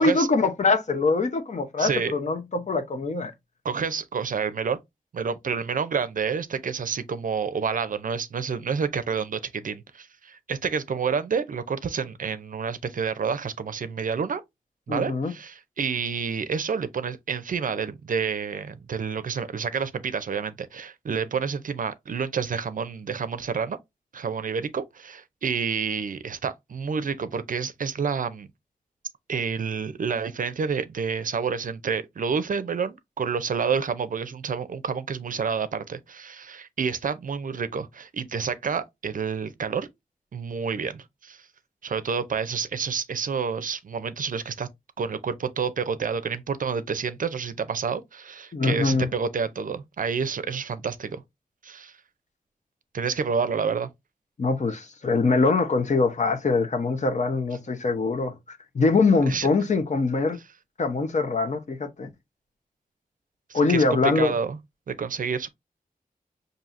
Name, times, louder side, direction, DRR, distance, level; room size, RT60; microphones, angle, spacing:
voice 1, 0.0-3.3 14.9-15.3 48.5-49.1 54.4-60.4 60.8-62.1 63.5-64.3, left 3 dB, 50° left, 0.7 m, -23 dB
voice 2, 1.8-2.1 3.6-4.8 5.1-14.4 14.9-23.8 24.1-28.5 29.3-39.9 40.3-41.4 41.8-44.7 45.0-51.2 51.6-52.0 52.9-53.9 59.2-59.5 63.5-64.6 64.9-65.5, right 6 dB, 65° right, 0.5 m, -29 dB
5.5 x 2.7 x 2.5 m
wide cardioid pair, 85°, 15 cm